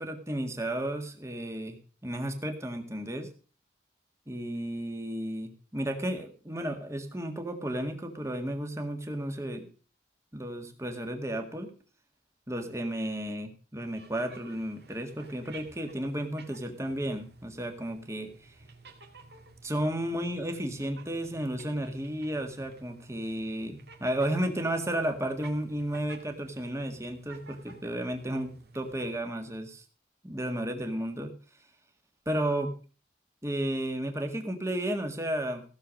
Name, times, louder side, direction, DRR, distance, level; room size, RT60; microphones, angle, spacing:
voice 1, 0.0-3.3 4.3-9.7 10.3-11.7 12.5-18.5 19.6-29.8 30.2-31.3 32.3-32.7 33.4-35.6, right 1 dB, 15° right, 6 dB, 1.8 m, -33 dB
sound 1, 13.8-29.2, right 3 dB, 55° right, 2.3 m, -53 dB
16.0 x 7.0 x 6.4 m, 0.38 s
head